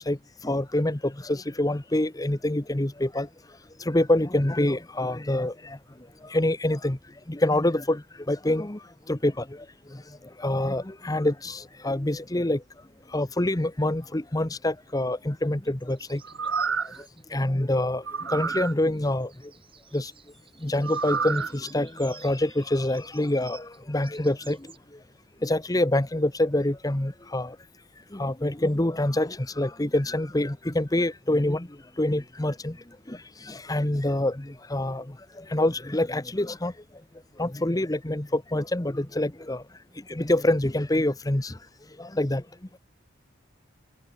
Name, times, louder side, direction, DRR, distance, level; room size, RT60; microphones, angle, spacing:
voice 1, 0.4-3.3 3.9-5.8 6.3-7.0 7.3-8.8 9.1-9.4 10.4-12.6 13.1-16.2 17.3-19.3 19.9-20.1 20.6-24.6 25.4-27.5 28.1-31.7 32.0-32.8 33.1-33.2 33.5-35.0 35.5-36.7 37.4-39.6 40.1-41.5 42.0-42.4, left 1 dB, 20° left, 1.0 m, -26 dB
sound 1, 15.6-17.2 18.5-24.8, right 7 dB, 25° right, 7.2 m, -52 dB
sound 2, 16.2-17.0 18.0-18.7 20.8-21.5 22.0-22.1, right 5 dB, 70° right, 2.4 m, -29 dB
head